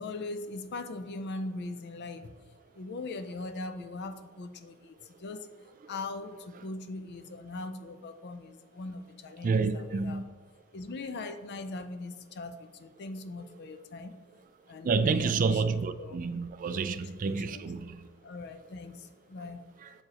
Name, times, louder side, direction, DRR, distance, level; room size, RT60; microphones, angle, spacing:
voice 1, 0.0-2.3 2.7-5.5 5.9-10.2 10.7-14.2 14.7-15.6 16.0-16.2 16.7-17.0 17.3-17.6 18.2-19.6, left 2 dB, 50° left, 0.4 m, -40 dB
voice 2, 9.4-10.2 14.8-18.1 19.8-19.9, right 4 dB, 40° right, 0.3 m, -29 dB
7.7 x 4.8 x 2.9 m
head